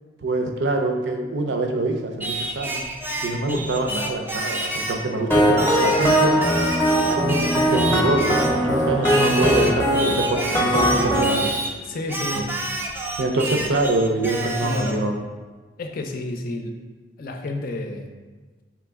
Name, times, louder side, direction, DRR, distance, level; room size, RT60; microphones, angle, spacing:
voice 1, 0.2-2.8 3.2-6.4 7.0-11.5 12.3-12.4 13.2-15.2, right 2 dB, 70° right, 3 dB, 0.5 m, -25 dB
Singing, 2.2-5.1 5.6-8.6 9.0-11.7 12.1-15.0, right 2 dB, 10° right, 0.4 m, -29 dB
voice 2, 3.3-3.7 5.2-5.3 11.8-12.5 14.2-15.2 15.8-16.8 17.2-18.1, left 2 dB, 50° left, 4 dB, 0.5 m, -31 dB
sound 1, 5.3-11.3, equal, 15° left, 0.7 m, -20 dB
5.0 x 3.0 x 3.5 m, 1.3 s
head